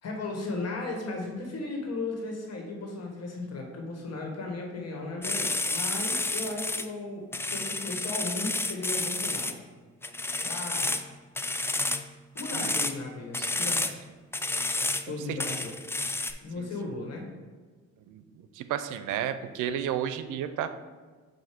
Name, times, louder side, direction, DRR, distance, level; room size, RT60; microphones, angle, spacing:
voice 1, 0.0-9.6 10.4-10.9 12.3-14.0 15.1-15.8 16.4-17.3, left 3 dB, 55° left, 1 dB, 1.6 m, -36 dB
sound 1, 5.2-6.9 7.3-9.5 10.0-11.1 11.4-12.1 12.4-12.9 13.3-13.9 14.3-15.1 15.4-16.3, left 2 dB, 10° left, 0.3 m, -30 dB
voice 2, 18.6-20.7, right 10 dB, 85° right, 10 dB, 0.5 m, -32 dB
7.6 x 2.6 x 5.1 m, 1.4 s
cardioid pair, 90°, 30 cm